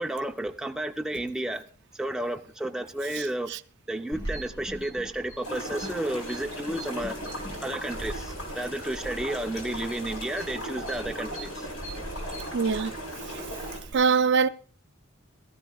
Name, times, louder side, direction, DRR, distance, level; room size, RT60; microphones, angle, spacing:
voice 1, 0.0-1.6 1.9-3.5 3.9-7.2 7.6-11.7, right 1 dB, 5° right, 0.5 m, -32 dB
sound 1, 4.1-13.9, right 1 dB, 20° left, 2.8 m, -42 dB
sound 2, 5.4-13.8, equal, 85° left, 4.6 m, -37 dB
voice 2, 12.5-12.9 13.9-14.5, right 5 dB, 55° right, 0.4 m, -22 dB
16.5 x 13.5 x 2.3 m
head